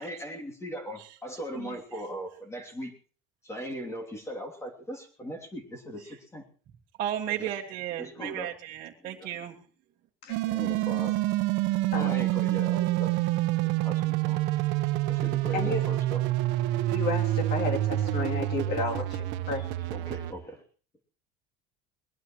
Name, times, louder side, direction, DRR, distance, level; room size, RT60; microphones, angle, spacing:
voice 1, 0.0-2.9 3.4-6.4 7.4-7.6 7.9-8.6 9.0-9.3 10.4-11.2 11.9-13.1 13.6-14.4 14.8-16.2 19.9-20.6, equal, 15° left, 1 dB, 3.0 m, -39 dB
voice 2, 7.0-9.6, right 11 dB, 50° right, -1 dB, 1.8 m, -34 dB
sound 1, 10.3-20.3, right 15 dB, 70° right, 1.3 m, -27 dB
voice 3, 11.9-12.2 15.5-15.8 16.9-19.7, left 3 dB, 55° left, 3 dB, 3.2 m, -32 dB
22.0 x 20.0 x 3.1 m, 0.41 s
cardioid pair, 140°, 20 cm